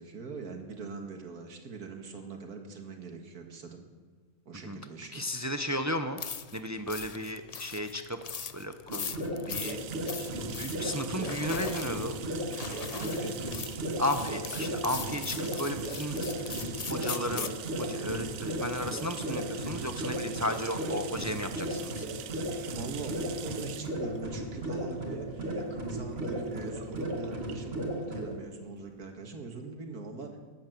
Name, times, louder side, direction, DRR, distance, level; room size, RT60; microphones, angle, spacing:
voice 1, 0.0-3.8 4.5-5.3 12.9-13.5 22.7-30.3, right 4 dB, 80° right, 3 dB, 2.2 m, -42 dB
voice 2, 5.1-6.2 6.5-8.2 8.5-9.1 9.5-9.8 10.6-12.2 14.0-16.2 16.9-17.5 17.8-22.0, equal, 25° right, 8 dB, 0.3 m, -34 dB
sound 1, 6.2-17.6, left 6 dB, 70° left, 0.3 m, -40 dB
sound 2, 8.9-28.4, right 1 dB, 45° right, 2.6 m, -35 dB
sound 3, 9.6-29.0, right 10 dB, 65° right, 1.1 m, -45 dB
19.5 x 8.7 x 7.6 m, 1.4 s
omnidirectional pair, 1.6 m